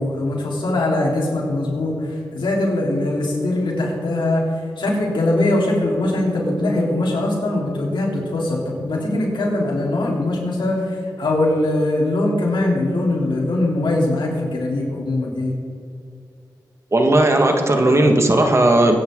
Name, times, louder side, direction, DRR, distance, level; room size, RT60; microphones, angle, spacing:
voice 1, 0.0-4.4 4.8-15.5, left 2 dB, 90° left, -2 dB, 3.7 m, -21 dB
voice 2, 16.9-19.0, right 1 dB, 35° right, 3 dB, 1.9 m, -15 dB
22.0 x 10.0 x 4.0 m, 2.2 s
wide cardioid pair, 75°, 8 cm